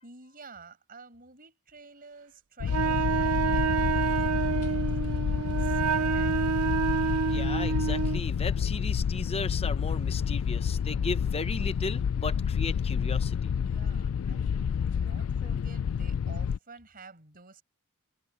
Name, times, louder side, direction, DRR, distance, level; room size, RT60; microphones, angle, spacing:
voice 1, 0.0-6.4 13.6-17.6, right 4 dB, 40° right, 6.0 m, -51 dB
sound 1, 2.6-16.6, left 7 dB, 75° left, 0.4 m, -29 dB
Wind instrument woodwind instrument, 2.7-8.2, right 6 dB, 75° right, 0.6 m, -28 dB
voice 2, 7.3-13.5, left 3 dB, 30° left, 0.8 m, -36 dB
head